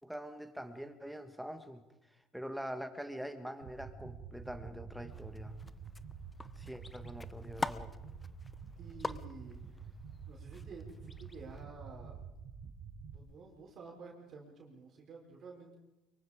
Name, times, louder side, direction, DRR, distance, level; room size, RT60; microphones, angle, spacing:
voice 1, 0.0-1.8 2.3-5.6 6.6-7.9, equal, ahead, 8 dB, 2.0 m, -44 dB
sound 1, 3.6-13.2, right 6 dB, 60° right, 3.4 m, -48 dB
sound 2, 5.1-11.6, left 3 dB, 15° left, 0.8 m, -45 dB
voice 2, 8.8-9.8 10.3-12.2 13.1-15.8, right 4 dB, 45° right, 0 dB, 4.7 m, -51 dB
24.0 x 23.5 x 5.1 m, 0.99 s
supercardioid pair, 110°, 0 cm